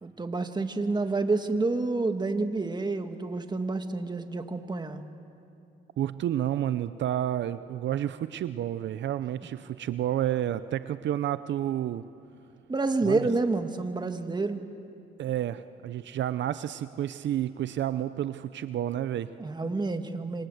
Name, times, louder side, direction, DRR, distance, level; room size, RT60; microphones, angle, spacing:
voice 1, 0.0-5.0 12.7-14.6 19.4-20.5, right 3 dB, 20° right, 7 dB, 1.8 m, -29 dB
voice 2, 6.0-12.0 13.0-13.2 15.2-19.3, right 11 dB, 65° right, 13 dB, 0.7 m, -30 dB
27.5 x 26.0 x 8.0 m, 2.6 s
cardioid pair, 90°, 20 cm